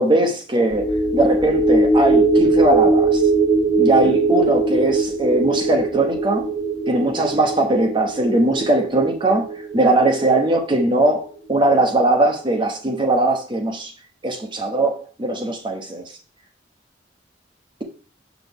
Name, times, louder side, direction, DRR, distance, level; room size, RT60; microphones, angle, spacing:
voice 1, 0.0-3.2 3.8-6.5 6.9-13.9 14.2-16.0, right 2 dB, 25° right, 0.9 m, -20 dB
sound 1, 0.7-11.3 11.7-11.8, right 3 dB, 5° left, 1.6 m, -20 dB
7.1 x 6.1 x 3.5 m
head